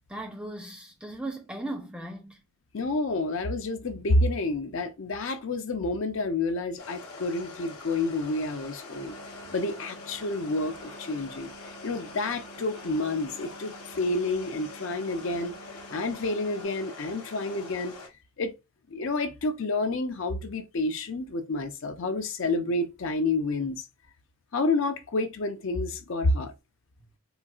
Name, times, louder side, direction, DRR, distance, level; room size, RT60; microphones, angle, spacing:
voice 1, 0.1-2.4, right 1 dB, 5° right, 0.4 m, -37 dB
voice 2, 2.7-9.2 9.5-11.5 11.8-15.5 15.9-17.9 18.4-18.5 18.9-23.8 24.5-26.5, left 2 dB, 55° left, 0.5 m, -29 dB
sound 1, 6.8-18.1, left 3 dB, 85° left, 0.7 m, -44 dB
sound 2, 9.0-16.7, right 7 dB, 70° right, 0.5 m, -53 dB
3.9 x 2.3 x 2.3 m
head